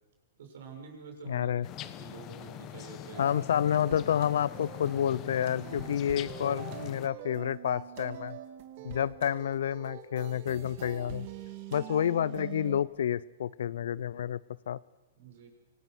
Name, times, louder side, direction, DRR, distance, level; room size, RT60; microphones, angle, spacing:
voice 1, 0.4-1.5 1.8-3.4 15.1-15.5, right 5 dB, 65° right, 3 dB, 6.6 m, -47 dB
voice 2, 1.3-1.7 3.2-8.4 8.8-11.3 11.7-14.4 14.7-14.8, left 9 dB, 70° left, 21 dB, 0.6 m, -29 dB
sound 1, 1.6-7.1, left 13 dB, 35° left, 1.2 m, -43 dB
sound 2, 3.1-12.8, right 10 dB, 50° right, 2.4 m, -44 dB
26.0 x 19.5 x 6.3 m, 1.1 s
hypercardioid pair, 125°, 0 cm